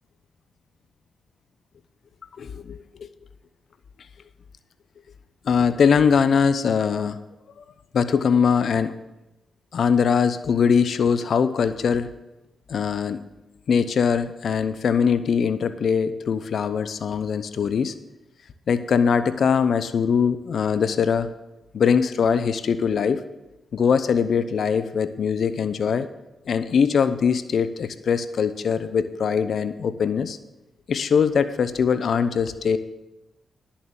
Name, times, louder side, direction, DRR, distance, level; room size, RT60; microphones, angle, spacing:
voice 1, 2.4-3.1 5.4-7.2 7.9-8.9 9.7-12.1 12.7-13.2 13.7-17.9 18.7-21.3 21.7-23.2 23.7-26.1 26.5-30.4 30.9-32.8, left 6 dB, 70° left, 13 dB, 0.7 m, -22 dB
11.0 x 7.1 x 7.3 m, 0.96 s
supercardioid pair, 45°, 0 cm